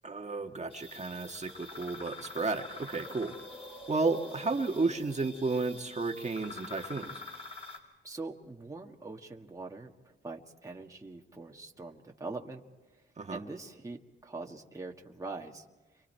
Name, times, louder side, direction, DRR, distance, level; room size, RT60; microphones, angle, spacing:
voice 1, 0.0-3.3 3.6-7.2 13.2-13.4, right 3 dB, 35° right, 3 dB, 1.7 m, -33 dB
sound 1, 0.7-7.8, left 2 dB, 25° left, 5.0 m, -46 dB
voice 2, 8.0-12.6 13.3-15.6, right 3 dB, 15° right, 0 dB, 1.7 m, -43 dB
29.5 x 24.5 x 4.5 m, 1.2 s
cardioid pair, 80°, 21 cm